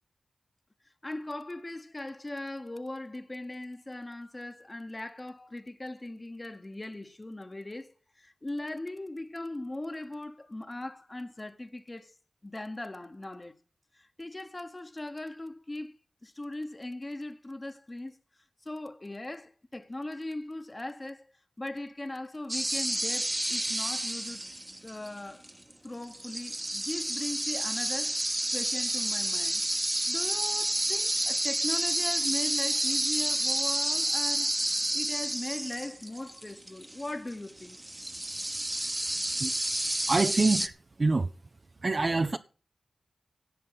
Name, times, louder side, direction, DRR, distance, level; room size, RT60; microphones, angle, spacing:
voice 1, 1.0-12.1 12.4-13.5 13.9-15.9 16.2-18.2 18.6-21.3 21.6-24.4 24.8-25.5 25.8-29.7 30.1-34.6 34.9-37.8, left 2 dB, 25° left, 1.1 m, -39 dB
sound 1, 22.5-25.1 25.4-25.7 26.1-40.7, right 1 dB, 20° right, 1.1 m, -30 dB
voice 2, 40.1-40.7 41.0-41.3 41.8-42.4, right 3 dB, 45° right, 0.6 m, -25 dB
17.5 x 7.4 x 5.7 m
wide cardioid pair, 85°, 0 cm